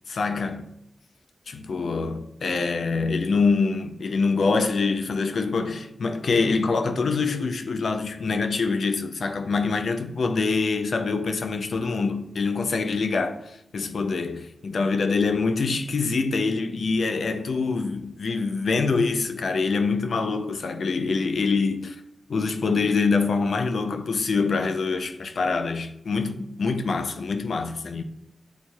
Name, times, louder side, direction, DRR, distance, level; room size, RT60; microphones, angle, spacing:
voice 1, 0.1-0.7 1.5-22.0 22.3-28.0, left 4 dB, 75° left, 0.4 m, -25 dB
7.7 x 2.7 x 2.3 m
cardioid pair, 45°, 0 cm